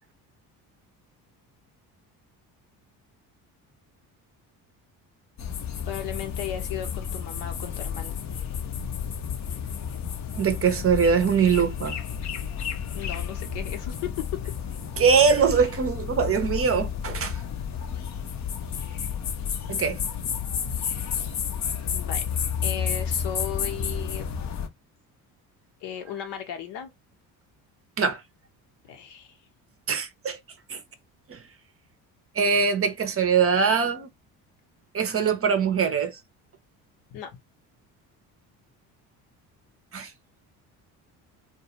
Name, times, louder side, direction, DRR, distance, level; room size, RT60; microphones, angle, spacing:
sound 1, 5.4-24.7, left 7 dB, 40° left, 0.6 m, -31 dB
voice 1, 5.9-8.2 12.9-14.4 21.9-22.2 22.6-24.3 25.8-26.9 28.9-29.4 37.1-37.3, left 9 dB, 70° left, 0.9 m, -35 dB
voice 2, 10.3-12.0 15.0-17.4 19.7-20.0 28.0-28.2 29.9-30.4 30.7-30.8 31.3-31.4 32.4-34.1 34.9-36.2 39.9-40.1, right 6 dB, 30° right, 0.6 m, -22 dB
2.2 x 2.2 x 2.9 m
hypercardioid pair, 65°, 43 cm